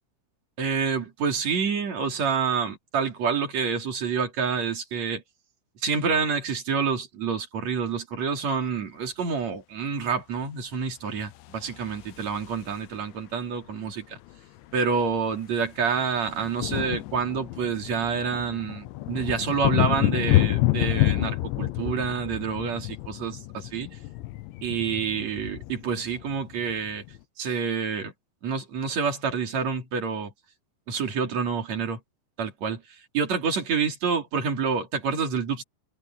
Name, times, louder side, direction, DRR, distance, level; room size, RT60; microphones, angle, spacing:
voice 1, 0.6-5.2 5.8-14.2 14.7-24.0 24.6-27.0 27.4-28.1 28.4-30.3 30.9-32.0 32.4-32.8 33.1-35.6, right 6 dB, 40° right, 4.0 m, -28 dB
sound 1, 11.4-13.0 14.3-14.4 14.6-14.8 15.1-27.2, left 17 dB, 90° left, 3.2 m, -28 dB
omnidirectional pair, 5.1 m